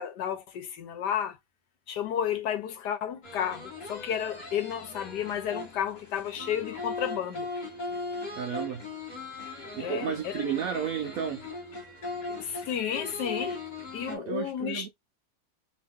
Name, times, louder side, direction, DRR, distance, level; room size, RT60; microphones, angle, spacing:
voice 1, 0.0-1.4 1.9-7.5 9.8-10.4 12.4-13.6 13.9-14.9, left 9 dB, 70° left, 1.3 m, -32 dB
sound 1, 3.2-14.2, left 3 dB, 30° left, 0.9 m, -39 dB
voice 2, 8.4-8.9 9.7-11.5 14.1-14.9, right 8 dB, 65° right, 0.9 m, -32 dB
3.0 x 2.9 x 3.5 m
omnidirectional pair, 2.0 m